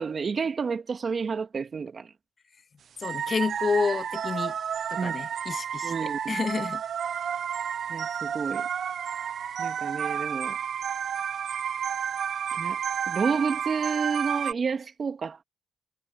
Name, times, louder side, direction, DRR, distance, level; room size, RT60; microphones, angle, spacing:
voice 1, 0.0-2.1 5.0-5.2 5.8-6.4 7.9-8.7 9.6-10.6 12.5-12.8 13.1-15.4, right 5 dB, 40° right, 2.2 m, -30 dB
voice 2, 3.0-4.6 4.9-6.8, left 5 dB, 40° left, 2.2 m, -29 dB
sound 1, 3.0-14.5, right 8 dB, 60° right, 0.6 m, -31 dB
cardioid pair, 90°, 0 cm